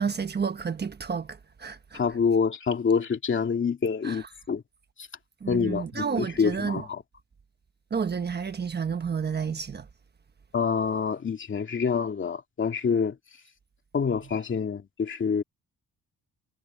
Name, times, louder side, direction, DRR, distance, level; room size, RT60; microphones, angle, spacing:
voice 1, 0.0-2.0 4.0-4.3 5.4-6.9 7.9-9.9, right 6 dB, 30° right, 1.2 m, -30 dB
voice 2, 1.9-4.6 5.0-5.1 5.5-7.0 10.5-13.2 13.9-15.4, left 6 dB, 40° left, 2.5 m, -26 dB
cardioid pair, 135°, 32 cm